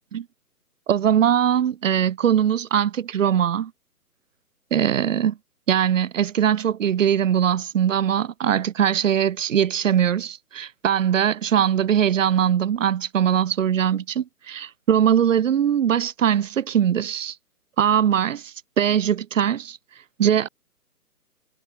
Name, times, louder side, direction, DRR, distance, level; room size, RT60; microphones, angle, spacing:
voice 1, 0.9-3.7 4.7-5.3 5.7-17.4 17.8-19.8 20.2-20.5, right 9 dB, 55° right, 0.5 m, -21 dB
figure-of-eight pair, 150°, 47 cm